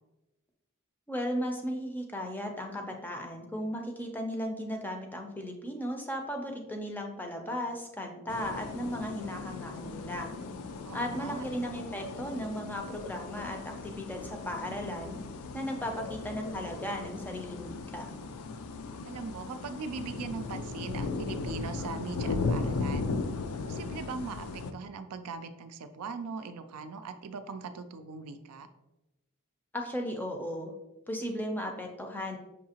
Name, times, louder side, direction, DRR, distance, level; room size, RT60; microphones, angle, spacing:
voice 1, 1.1-10.3 10.9-15.2 15.5-18.1 29.7-30.7 31.1-32.4, equal, 10° left, 3 dB, 0.4 m, -36 dB
sound 1, 8.3-24.7, left 3 dB, 75° left, 0.4 m, -37 dB
voice 2, 10.8-11.4 19.0-23.1 23.6-28.7, right 4 dB, 80° right, 9 dB, 0.4 m, -40 dB
5.7 x 2.7 x 2.8 m, 0.99 s
head